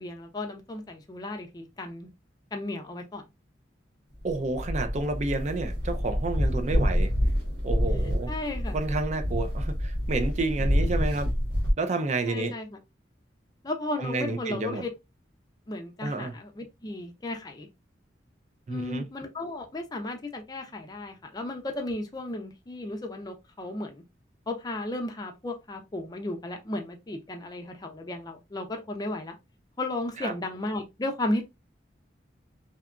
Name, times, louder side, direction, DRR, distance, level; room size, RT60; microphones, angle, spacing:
voice 1, 0.0-2.1 2.5-3.2 8.3-8.8 12.3-12.8 13.6-14.9 15.7-17.7 18.7-24.0 24.5-29.3 29.8-31.4, left 2 dB, 20° left, 0.4 m, -34 dB
voice 2, 4.2-7.1 7.6-8.3 8.7-11.3 11.8-12.5 14.0-14.8 16.0-16.3 18.7-19.0 30.2-30.3, right 3 dB, 40° right, 0.4 m, -30 dB
sound 1, 4.2-11.7, equal, 75° right, 1.1 m, -27 dB
2.8 x 2.3 x 2.4 m
head